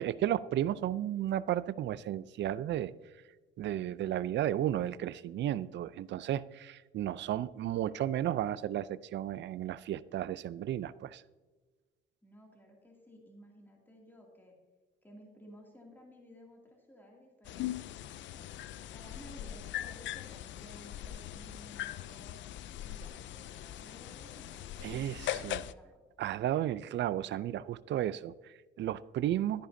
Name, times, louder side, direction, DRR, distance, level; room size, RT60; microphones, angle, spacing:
voice 1, 0.0-2.9 3.6-11.2 24.8-25.6 26.2-29.7, right 12 dB, 65° right, 17 dB, 0.4 m, -33 dB
voice 2, 12.2-14.6 15.0-18.5 18.9-22.4 22.8-26.0, equal, 10° left, -1 dB, 2.4 m, -56 dB
sound 1, 17.4-25.7, left 12 dB, 70° left, 0.4 m, -41 dB
13.0 x 10.0 x 2.7 m, 1.3 s
cardioid pair, 90°, 20 cm